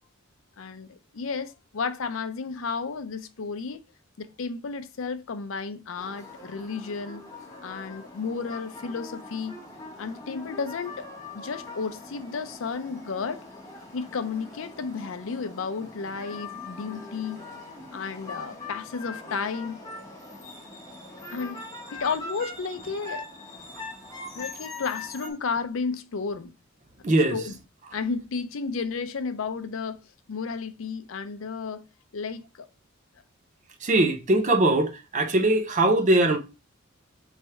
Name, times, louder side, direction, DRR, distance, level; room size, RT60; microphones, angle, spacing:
voice 1, 0.6-3.8 4.2-7.2 7.6-9.6 10.0-11.1 11.3-13.5 13.9-17.4 17.9-19.8 21.3-21.7 21.9-23.3 24.4-26.5 27.3-27.6 27.9-30.0 30.3-31.8 32.1-32.7, left 5 dB, 70° left, 0.5 m, -32 dB
sound 1, 6.0-25.3, left 3 dB, 15° left, 1.0 m, -42 dB
voice 2, 27.0-27.4 33.8-36.4, right 2 dB, 35° right, 0.6 m, -21 dB
3.5 x 3.3 x 4.2 m
head